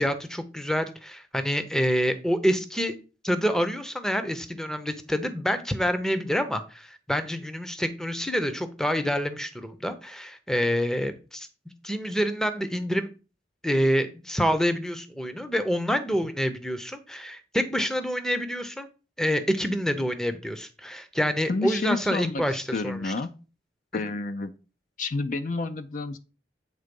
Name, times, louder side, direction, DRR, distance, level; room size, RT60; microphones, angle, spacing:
voice 1, 0.0-2.9 3.2-11.5 11.8-13.1 13.6-18.9 19.2-23.1, equal, 5° left, 9 dB, 0.6 m, -27 dB
voice 2, 21.5-22.4 22.7-23.3 23.9-24.5 25.0-26.2, left 3 dB, 50° left, 10 dB, 0.5 m, -29 dB
8.2 x 3.7 x 5.2 m, 0.34 s
head